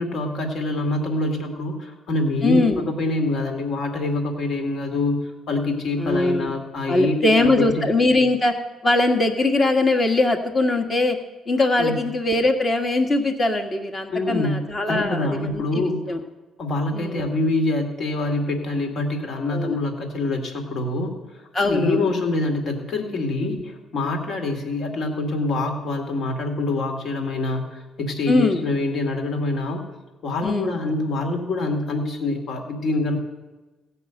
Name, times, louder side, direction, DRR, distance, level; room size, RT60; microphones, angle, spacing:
voice 1, 0.0-7.9 11.8-11.9 14.1-16.1 16.6-21.2 21.6-29.9 30.2-33.2, left 2 dB, 55° left, 4 dB, 2.3 m, -25 dB
voice 2, 2.4-2.8 6.0-6.5 6.9-8.5 8.8-11.2 11.5-16.2 16.9-17.3 19.5-19.8 21.5-22.1 23.4-23.7 28.3-28.6 30.4-30.7, left 2 dB, 30° left, 4 dB, 1.6 m, -21 dB
16.0 x 5.5 x 9.0 m, 1.2 s
cardioid pair, 105°, 0 cm